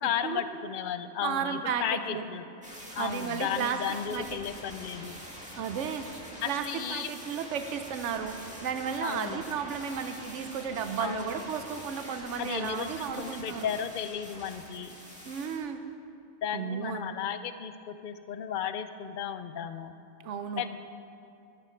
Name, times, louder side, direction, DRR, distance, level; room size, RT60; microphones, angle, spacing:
voice 1, 0.0-2.5 2.9-5.2 6.4-7.1 9.0-9.4 11.0-11.5 12.4-14.9 16.4-19.9 20.6-20.8, left 9 dB, 65° left, 11 dB, 0.5 m, -34 dB
voice 2, 1.2-2.2 3.0-4.4 5.6-6.1 6.5-13.7 15.3-15.8 16.5-17.0 20.2-20.6, right 7 dB, 70° right, 8 dB, 1.0 m, -33 dB
sound 1, 2.6-15.6, equal, 5° right, 1.8 m, -45 dB
14.5 x 9.0 x 4.5 m, 2.6 s
omnidirectional pair, 1.3 m